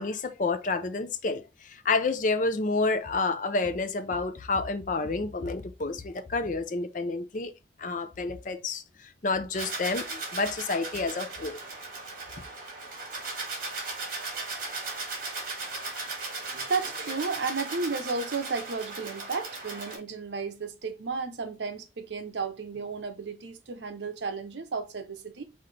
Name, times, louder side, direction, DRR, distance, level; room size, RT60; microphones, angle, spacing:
voice 1, 0.0-7.5 7.8-11.6, left 3 dB, 45° left, 0.5 m, -29 dB
sound 1, 9.5-20.0, right 3 dB, 50° right, 1.6 m, -37 dB
voice 2, 16.5-25.4, right 4 dB, 75° right, 0.7 m, -33 dB
5.9 x 2.5 x 3.2 m
head